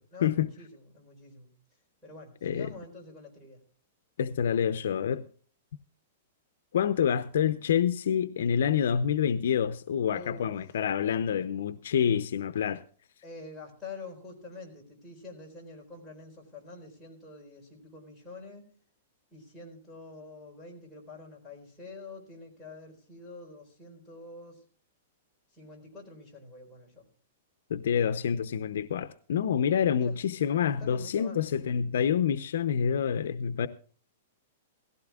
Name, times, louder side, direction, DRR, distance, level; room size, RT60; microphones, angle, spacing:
voice 1, 0.1-1.5 2.0-3.6 10.1-10.7 13.2-18.7 19.3-24.6 25.5-27.1 30.0-30.2 30.6-31.4, left 3 dB, 5° left, 4.3 m, -47 dB
voice 2, 4.2-5.3 6.7-12.8 27.7-33.7, left 8 dB, 75° left, 0.6 m, -27 dB
18.0 x 15.5 x 2.4 m
hypercardioid pair, 160°, 0 cm